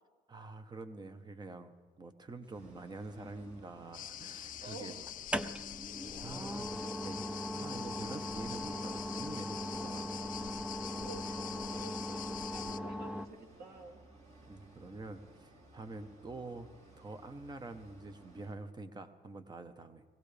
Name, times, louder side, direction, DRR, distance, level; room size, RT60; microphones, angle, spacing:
voice 1, 0.3-4.9 6.2-10.1 14.5-16.7 17.0-20.0, right 3 dB, 25° right, 9 dB, 1.1 m, -47 dB
sound 1, 2.5-18.5, right 1 dB, 40° right, 2.6 m, -58 dB
sound 2, 2.9-3.7 5.1-13.3, equal, 5° right, 0.6 m, -39 dB
sound 3, 3.9-12.8, left 12 dB, 55° left, 0.5 m, -45 dB
voice 2, 4.6-5.1 6.9-7.0 11.0-14.0, right 3 dB, 65° right, 2 dB, 2.6 m, -51 dB
21.5 x 16.5 x 3.4 m, 1.5 s
cardioid pair, 110°, 17 cm